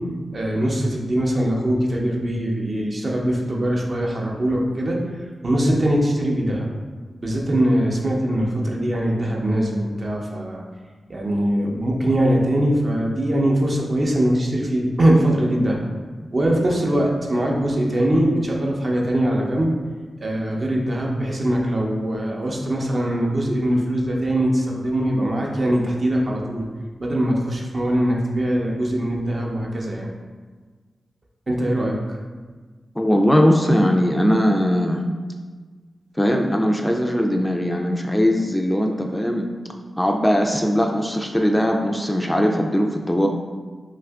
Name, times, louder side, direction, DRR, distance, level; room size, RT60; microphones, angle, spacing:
voice 1, 0.3-5.0 5.4-6.7 7.2-10.6 11.1-15.8 16.3-19.7 20.2-26.7 27.0-30.1 31.5-32.2, right 1 dB, 50° right, -1 dB, 0.6 m, -22 dB
voice 2, 33.0-35.0 36.2-39.5 40.0-43.3, equal, 10° left, 2 dB, 0.3 m, -20 dB
2.8 x 2.4 x 3.4 m, 1.4 s
cardioid pair, 40°, 0 cm